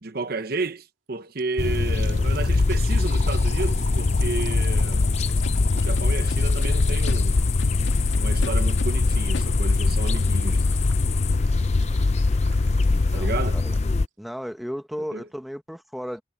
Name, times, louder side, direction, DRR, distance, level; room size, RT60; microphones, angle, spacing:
voice 1, 0.0-5.1 5.7-7.4 8.2-10.6 13.1-13.6 15.1-15.3, right 3 dB, 50° right, 0.9 m, -32 dB
sound 1, 1.4-14.0, right 5 dB, 80° right, 2.5 m, -46 dB
sound 2, 1.6-14.1, left 3 dB, 35° left, 0.4 m, -22 dB
Scratching (performance technique), 5.4-6.7 7.1-7.2 7.6-8.9 9.3-9.5, left 2 dB, 70° left, 2.2 m, -36 dB
voice 2, 12.9-13.8 14.2-16.2, equal, ahead, 1.3 m, -35 dB
head